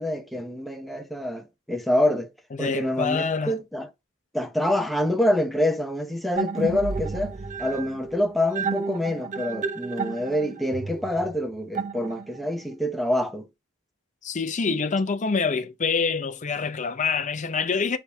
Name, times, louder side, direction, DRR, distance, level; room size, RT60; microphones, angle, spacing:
voice 1, 0.0-2.3 2.6-3.9 4.3-13.5, left 1 dB, ahead, 0.7 m, -26 dB
voice 2, 2.5-3.6 14.2-18.0, left 5 dB, 40° left, 0.6 m, -26 dB
sound 1, 6.4-12.5, right 4 dB, 40° right, 0.5 m, -32 dB
4.5 x 3.4 x 3.4 m
head